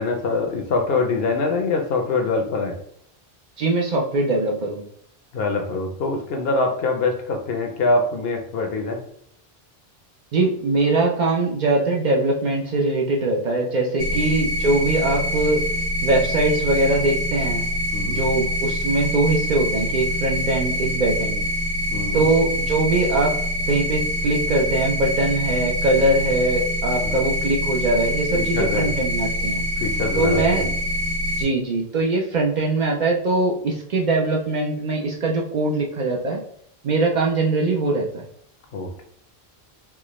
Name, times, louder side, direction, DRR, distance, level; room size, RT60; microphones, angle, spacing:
voice 1, 0.0-2.8 5.3-9.0 17.9-18.2 21.9-22.3 27.0-27.2 28.3-29.0 29.8-30.6 38.7-39.0, left 3 dB, 70° left, 3 dB, 0.9 m, -24 dB
voice 2, 3.6-4.8 10.3-15.6 16.0-17.6 18.0-21.4 22.1-23.3 23.7-29.6 30.1-30.7 31.4-36.4 36.8-38.2, right 2 dB, 55° right, -1 dB, 0.6 m, -22 dB
sound 1, 14.0-31.4, equal, 75° right, 1.7 m, -25 dB
4.5 x 2.1 x 3.0 m, 0.66 s
omnidirectional pair, 1.1 m